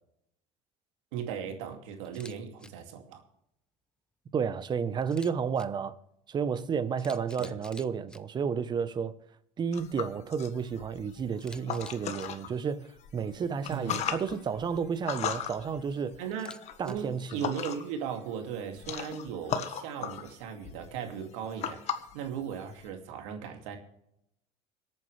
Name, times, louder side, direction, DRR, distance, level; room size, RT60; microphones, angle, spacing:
voice 1, 1.1-3.2 7.4-7.5 13.7-14.0 16.2-16.5 16.8-23.8, right 7 dB, 80° right, 2.5 m, -37 dB
Camera, 2.0-2.3 2.6-2.7 5.0-5.7 6.6-6.7 7.0-8.2 11.4-12.3 16.3-16.9, left 1 dB, 5° left, 0.7 m, -49 dB
voice 2, 4.3-6.0 6.3-9.1 9.6-16.2 16.8-17.4, right 6 dB, 30° right, 0.9 m, -31 dB
sound 1, 9.7-12.5 13.0-18.0 18.3-22.9, left 9 dB, 45° left, 1.5 m, -37 dB
25.0 x 8.9 x 3.3 m
supercardioid pair, 130°, 16 cm